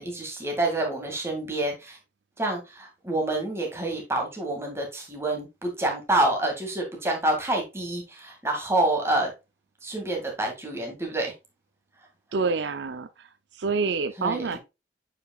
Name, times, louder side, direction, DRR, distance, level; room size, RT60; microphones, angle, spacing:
voice 1, 0.0-2.0 2.4-9.3 9.8-11.3 14.2-14.5, right 2 dB, 15° right, 2.1 m, -27 dB
voice 2, 12.3-13.3 13.6-14.6, right 4 dB, 75° right, 0.5 m, -27 dB
8.4 x 5.0 x 2.3 m
head